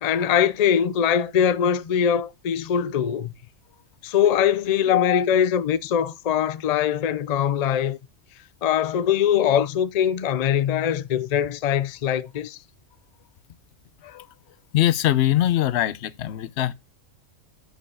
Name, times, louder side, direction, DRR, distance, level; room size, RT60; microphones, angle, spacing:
voice 1, 0.0-3.3 4.0-8.0 8.6-12.6, left 8 dB, 85° left, 0.3 m, -22 dB
voice 2, 4.9-5.3 14.0-14.3 14.7-16.7, left 13 dB, 65° left, 0.8 m, -22 dB
6.2 x 5.4 x 6.9 m
omnidirectional pair, 1.4 m